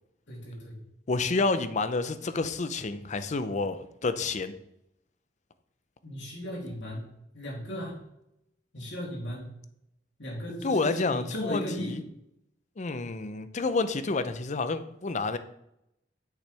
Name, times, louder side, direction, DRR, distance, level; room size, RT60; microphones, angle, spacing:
voice 1, 0.3-0.8 6.0-7.1 7.3-8.0 8.7-9.5 10.2-12.0, equal, 80° left, -3 dB, 3.0 m, -36 dB
voice 2, 1.1-4.5 10.6-12.0 12.8-15.4, left 3 dB, 40° left, 12 dB, 0.6 m, -29 dB
8.2 x 6.4 x 3.3 m, 0.80 s
head